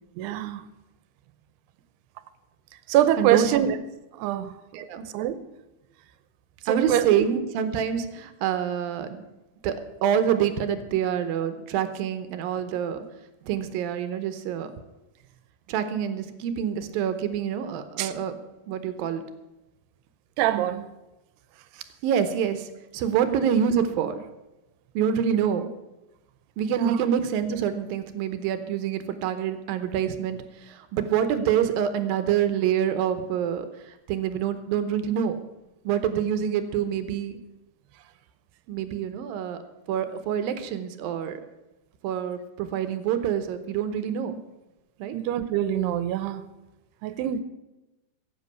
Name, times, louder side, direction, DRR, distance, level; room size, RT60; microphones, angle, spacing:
voice 1, 0.2-0.6 2.9-3.8 4.2-4.5 5.1-5.4 6.7-7.1 18.0-18.1 20.4-20.9 26.7-27.0 45.1-46.4 47.0-47.4, right 11 dB, 90° right, 2.8 m, -24 dB
voice 2, 4.7-5.1 6.7-9.2 9.6-9.8 10.0-13.0 13.4-14.7 15.7-18.3 18.7-19.2 22.0-24.2 25.0-25.7 26.6-33.7 34.1-35.3 35.9-37.4 38.7-39.6 39.9-41.4 42.0-44.4 45.0-45.2, right 8 dB, 75° right, 2.4 m, -26 dB
15.0 x 8.4 x 6.7 m
omnidirectional pair, 4.7 m